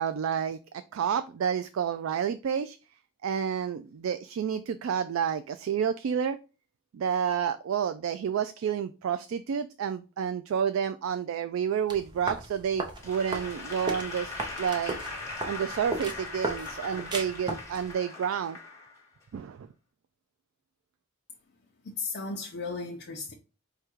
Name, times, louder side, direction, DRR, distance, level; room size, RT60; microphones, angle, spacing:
voice 1, 0.0-2.8 3.2-6.4 6.9-15.0 15.4-18.6 19.3-19.7, right 8 dB, 70° right, 0.3 m, -30 dB
sound 1, 11.9-17.9, right 2 dB, 20° right, 0.6 m, -37 dB
Applause / Crowd, 13.0-19.2, left 3 dB, 15° left, 1.2 m, -40 dB
voice 2, 21.8-23.3, left 4 dB, 50° left, 0.6 m, -35 dB
4.9 x 2.3 x 4.4 m
head